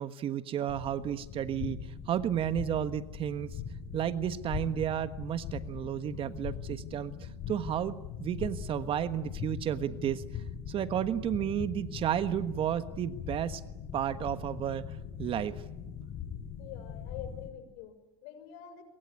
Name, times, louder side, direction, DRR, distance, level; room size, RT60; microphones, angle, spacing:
voice 1, 0.0-1.8 2.1-3.6 3.9-10.2 10.7-13.6 13.9-15.6, right 10 dB, 40° right, 12 dB, 1.4 m, -32 dB
sound 1, 0.7-17.5, left 7 dB, 45° left, 5.9 m, -41 dB
voice 2, 16.6-18.8, left 9 dB, 65° left, 10 dB, 6.4 m, -46 dB
24.5 x 22.5 x 9.7 m, 0.96 s
supercardioid pair, 105°, 14 cm